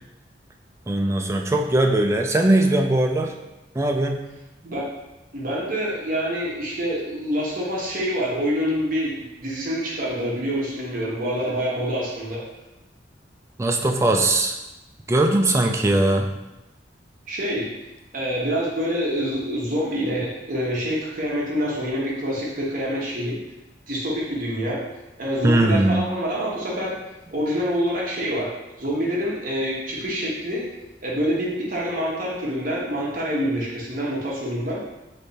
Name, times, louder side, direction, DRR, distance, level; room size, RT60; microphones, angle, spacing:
voice 1, 0.9-3.3 3.8-4.2 13.6-14.5 15.1-16.3 25.4-26.0, right 1 dB, 15° right, 2 dB, 0.3 m, -20 dB
voice 2, 5.3-12.4 17.3-17.7 18.1-23.4 23.9-24.8 25.2-27.0 27.3-28.5 28.8-30.6 31.0-34.8, equal, 50° right, -5 dB, 1.1 m, -26 dB
3.4 x 3.3 x 4.0 m, 0.99 s
head